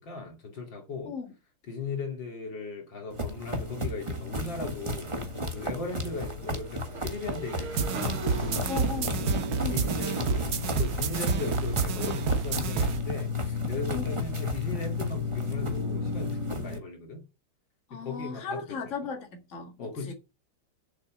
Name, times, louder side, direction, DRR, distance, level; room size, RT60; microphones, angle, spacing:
voice 1, 0.0-1.1 1.7-8.6 9.7-17.2 17.9-18.9 19.8-20.1, left 3 dB, 60° left, 3.0 m, -38 dB
sound 1, 3.1-16.8, left 2 dB, 15° right, 1.3 m, -33 dB
Motorcycle / Engine, 5.0-11.1, right 1 dB, 90° right, 3.3 m, -43 dB
sound 2, 7.8-13.0, right 5 dB, 55° right, 1.3 m, -30 dB
voice 2, 8.7-9.3 9.6-9.9 13.9-14.2 17.9-20.1, left 5 dB, 35° left, 2.1 m, -36 dB
7.4 x 6.8 x 6.8 m
omnidirectional pair, 2.3 m